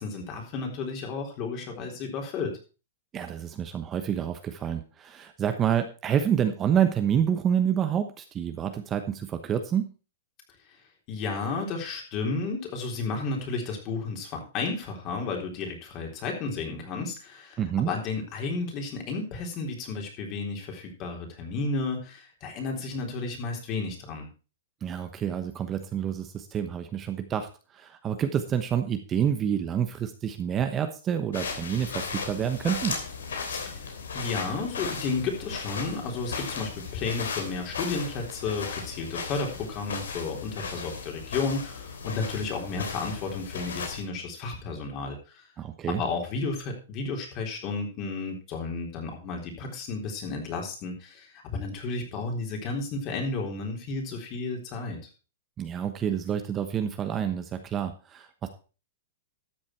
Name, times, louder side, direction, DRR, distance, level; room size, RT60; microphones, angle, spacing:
voice 1, 0.0-2.5 11.1-24.3 33.5-33.8 34.1-45.4 45.9-55.0, left 4 dB, 35° left, 2 dB, 3.7 m, -32 dB
voice 2, 3.1-9.9 17.6-17.9 24.8-33.0 45.6-46.0 55.6-58.5, right 9 dB, 20° right, 8 dB, 1.0 m, -28 dB
sound 1, 31.3-44.0, left 5 dB, 90° left, 3.2 m, -36 dB
13.0 x 7.1 x 4.6 m, 0.35 s
hypercardioid pair, 140°, 0 cm